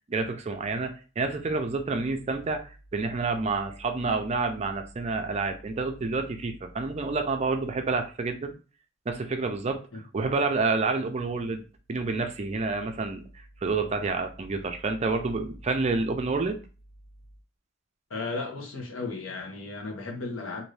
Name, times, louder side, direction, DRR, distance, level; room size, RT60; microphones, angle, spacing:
voice 1, 0.1-8.5 9.1-11.6 11.9-13.2 13.6-16.6, right 3 dB, 35° right, 0.4 m, -29 dB
voice 2, 18.1-20.6, left 3 dB, 85° left, 0.9 m, -35 dB
2.6 x 2.6 x 3.2 m
head